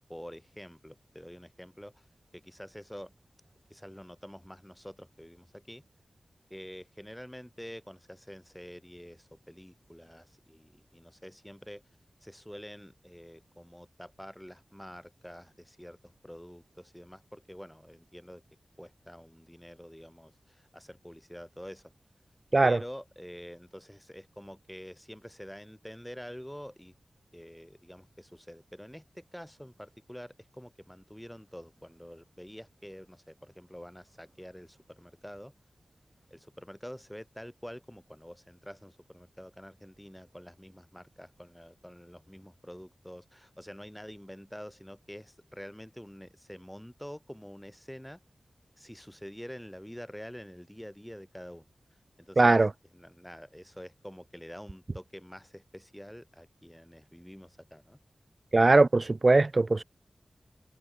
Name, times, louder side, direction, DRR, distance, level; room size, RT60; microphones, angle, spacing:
voice 1, 0.0-2.1 2.3-3.1 3.7-5.8 6.5-11.8 12.2-18.4 18.8-21.9 22.6-26.9 27.3-35.5 36.3-48.2 48.8-51.7 52.2-58.0, equal, 5° left, 7.6 m, -47 dB
voice 2, 52.4-52.7 58.5-59.8, right 3 dB, 45° right, 0.5 m, -21 dB
wide cardioid pair, 65°, 0 cm